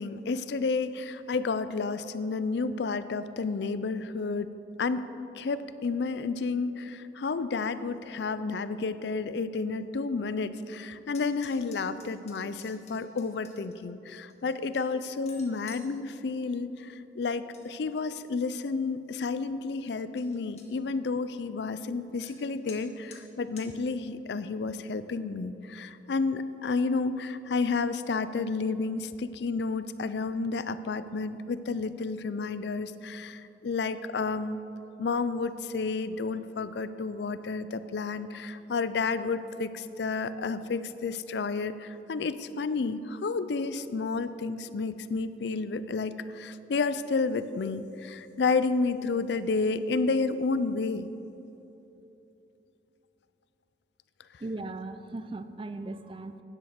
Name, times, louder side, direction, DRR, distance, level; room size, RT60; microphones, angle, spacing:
voice 1, 0.0-4.5 4.8-5.0 5.4-34.6 35.0-51.1, left 4 dB, 70° left, 13 dB, 0.4 m, -31 dB
sound 1, 11.1-13.7 14.3-15.9 17.2-17.7 18.0-18.5 19.0-19.1 19.5-19.6 19.9-20.0 20.2-20.7 22.2-22.3 22.7-22.8 23.1-23.2 23.6-23.7, left 5 dB, 35° left, 1.4 m, -51 dB
voice 2, 54.4-56.4, right 2 dB, 30° right, 10 dB, 0.4 m, -38 dB
10.0 x 7.8 x 6.5 m, 3.0 s
head